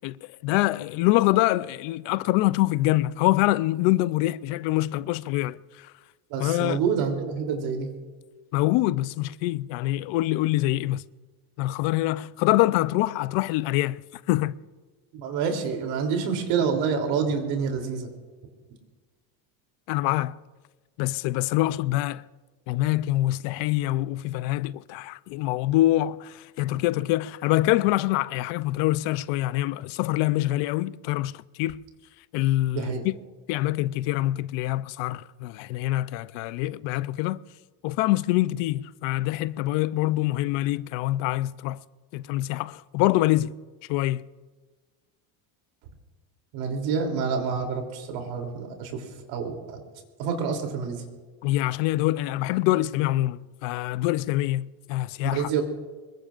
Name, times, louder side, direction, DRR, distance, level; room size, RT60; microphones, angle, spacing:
voice 1, 0.0-5.9 6.4-6.8 8.5-11.1 11.6-14.6 19.9-20.4 21.0-22.3 22.7-31.8 32.3-33.2 33.5-37.4 37.8-41.8 42.1-43.5 43.9-44.3 51.4-55.5, left 17 dB, 70° left, 0.6 m, -25 dB
voice 2, 6.3-7.9 15.1-18.1 32.7-33.0 46.5-49.8 50.2-51.0 55.2-55.6, right 6 dB, 80° right, 3.3 m, -27 dB
25.5 x 21.5 x 2.5 m
cardioid pair, 140°, 46 cm